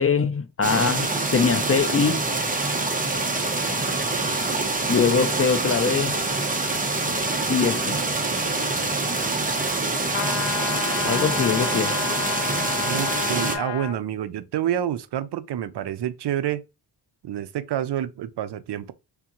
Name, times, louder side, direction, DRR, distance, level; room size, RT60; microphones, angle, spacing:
voice 1, 0.0-2.3 4.9-6.2 7.5-8.0 11.0-11.9, left 5 dB, 35° left, 0.4 m, -22 dB
sound 1, 0.6-13.6, right 3 dB, 20° right, 0.7 m, -25 dB
sound 2, 10.1-14.0, left 10 dB, 75° left, 0.7 m, -30 dB
voice 2, 12.8-16.6 17.2-18.9, right 11 dB, 65° right, 0.5 m, -28 dB
3.6 x 3.6 x 2.9 m
wide cardioid pair, 120°, 45 cm